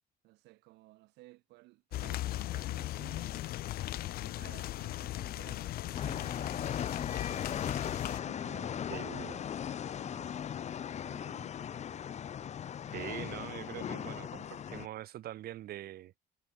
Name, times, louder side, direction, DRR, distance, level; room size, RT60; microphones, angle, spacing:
voice 1, 0.2-3.5 4.0-7.6 8.2-12.1 12.7-13.0, right 20 dB, 90° right, 6.1 m, -58 dB
sound 1, 1.9-8.2, left 15 dB, 65° left, 0.6 m, -38 dB
sound 2, 5.9-14.9, left 9 dB, 40° left, 0.9 m, -38 dB
voice 2, 8.9-9.4 12.9-16.1, right 13 dB, 65° right, 1.3 m, -43 dB
cardioid pair, 110°, 17 cm